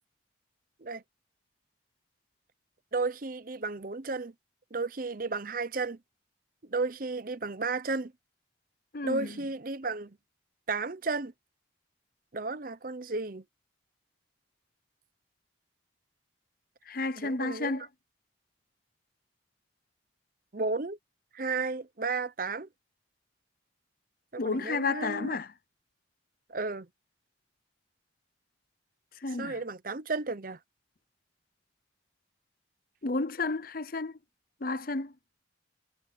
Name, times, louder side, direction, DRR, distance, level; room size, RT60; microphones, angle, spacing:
voice 1, 2.9-4.3 4.7-6.0 6.7-8.1 9.0-10.2 10.7-11.3 12.3-13.4 17.1-17.9 20.5-21.0 21.3-22.7 24.3-25.3 26.5-26.9 29.4-30.6, right 3 dB, 45° right, 0.8 m, -33 dB
voice 2, 8.9-9.3 16.9-17.8 24.4-25.5 29.2-29.6 33.0-34.2 34.6-35.1, left 3 dB, 50° left, 0.8 m, -31 dB
head